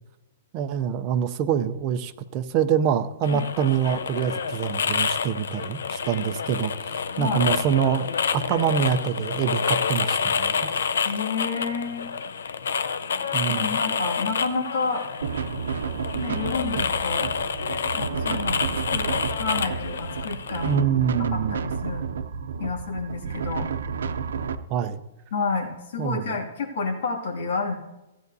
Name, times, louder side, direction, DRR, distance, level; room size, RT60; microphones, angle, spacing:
voice 1, 0.5-8.1 8.3-10.9 13.3-13.7 20.6-21.6 24.7-25.0 26.0-26.3, right 8 dB, 30° right, 9 dB, 0.5 m, -25 dB
sound 1, 3.2-20.8, left 6 dB, 90° left, 0.6 m, -28 dB
voice 2, 7.2-7.5 11.0-12.1 13.6-15.1 16.1-17.3 18.0-20.8 21.3-22.0 22.6-23.7 25.3-27.7, left 4 dB, 60° left, 2 dB, 2.2 m, -30 dB
sound 2, 15.2-24.6, right 6 dB, 85° right, 0.6 m, -31 dB
16.0 x 9.2 x 2.7 m, 0.99 s
hypercardioid pair, 165°, 0 cm